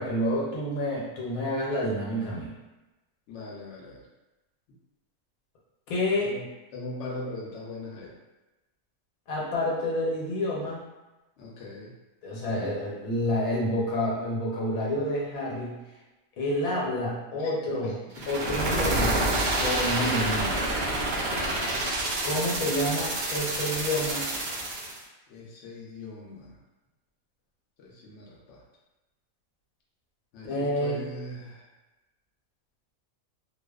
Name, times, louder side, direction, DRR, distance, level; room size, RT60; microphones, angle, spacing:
voice 1, 0.0-2.5 5.9-6.4 9.3-10.8 12.2-15.8 16.4-19.2 19.5-20.6 22.2-24.3 30.4-31.1, left 1 dB, 90° left, -4 dB, 1.2 m, -29 dB
voice 2, 3.3-4.0 6.2-6.5 6.7-8.1 11.4-11.9 17.4-17.5 17.8-18.3 25.3-26.5 27.8-28.6 30.3-31.6, left 2 dB, 65° left, -4 dB, 0.8 m, -40 dB
sound 1, 18.1-25.0, right 1 dB, 90° right, 0.4 m, -28 dB
2.8 x 2.0 x 2.2 m, 1.1 s
omnidirectional pair, 1.4 m